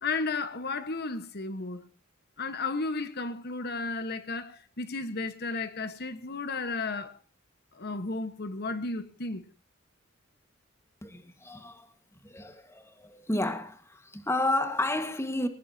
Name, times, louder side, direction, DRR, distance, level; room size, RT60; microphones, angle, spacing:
voice 1, 0.0-1.9 2.4-7.2 7.7-9.4, left 3 dB, 55° left, 1.4 m, -33 dB
voice 2, 11.0-11.9 12.2-15.5, left 2 dB, 15° left, 1.6 m, -31 dB
21.0 x 19.5 x 2.8 m
head